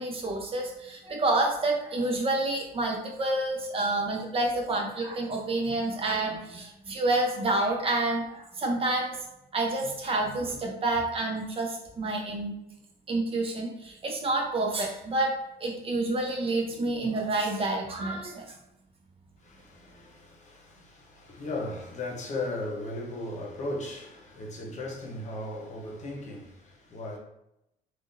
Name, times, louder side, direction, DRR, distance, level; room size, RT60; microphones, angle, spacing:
voice 1, 0.0-9.1 9.5-12.5 13.1-15.3 15.6-18.4, right 2 dB, 35° right, 0.8 m, -28 dB
voice 2, 19.4-27.2, left 2 dB, 45° left, 0.9 m, -37 dB
3.6 x 2.4 x 2.6 m
cardioid pair, 110°, 17 cm